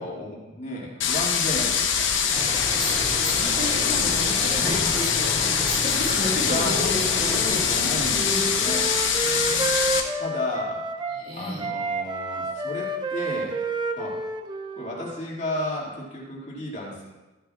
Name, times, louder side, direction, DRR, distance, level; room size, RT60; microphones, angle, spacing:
voice 1, 0.0-2.1 6.4-8.8 10.2-10.8 11.3-13.6 14.0-14.2 14.8-17.1, left 1 dB, 35° left, -4 dB, 2.3 m, -33 dB
sound 1, 1.0-10.0, left 7 dB, 65° left, 1.0 m, -23 dB
sound 2, 2.3-8.9, left 1 dB, 5° right, 2.6 m, -34 dB
voice 2, 2.7-7.8 8.2-8.5 9.2-9.9 11.1-11.7, equal, 40° right, -4 dB, 2.9 m, -32 dB
Wind instrument woodwind instrument, 7.7-11.2 11.6-15.3, right 2 dB, 20° right, 0.5 m, -30 dB
14.0 x 10.0 x 2.5 m, 1.1 s
head